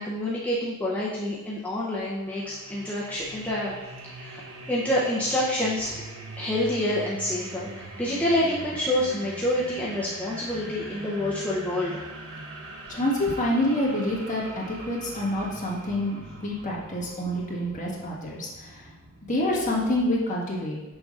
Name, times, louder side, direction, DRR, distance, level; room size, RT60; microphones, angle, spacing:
voice 1, 0.0-3.8 4.2-6.0 6.4-12.0, left 1 dB, 5° left, -8 dB, 0.6 m, -27 dB
sound 1, 2.3-20.2, right 2 dB, 80° right, 0.9 m, -42 dB
voice 2, 12.9-18.9 19.3-20.8, left 1 dB, 35° left, -5 dB, 1.4 m, -27 dB
6.4 x 6.1 x 2.4 m, 1.1 s
head